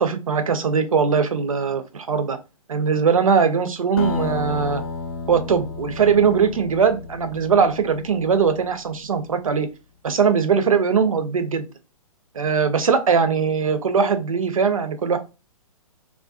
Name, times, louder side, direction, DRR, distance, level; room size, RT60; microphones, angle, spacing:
voice 1, 0.0-2.4 2.7-4.8 5.3-9.7 10.0-11.7 12.3-15.2, right 6 dB, 70° right, 9 dB, 0.5 m, -20 dB
Acoustic guitar, 4.0-8.8, left 4 dB, 45° left, 0.5 m, -33 dB
2.5 x 2.2 x 2.3 m, 0.29 s
figure-of-eight pair, 115°, 18 cm